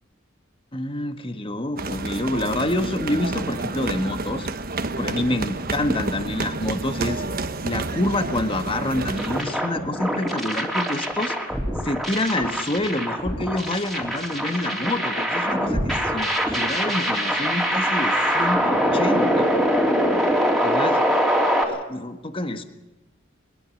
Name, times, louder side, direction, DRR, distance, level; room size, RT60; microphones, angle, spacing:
voice 1, 0.7-4.5 5.0-7.2 7.6-19.5 20.6-21.0 21.7-22.6, left 1 dB, 25° left, 8 dB, 1.5 m, -27 dB
sound 1, 1.8-9.4, right 2 dB, 45° right, 1.2 m, -29 dB
sound 2, 9.2-21.6, equal, ahead, 3.7 m, -23 dB
22.0 x 22.0 x 6.5 m, 1.0 s
head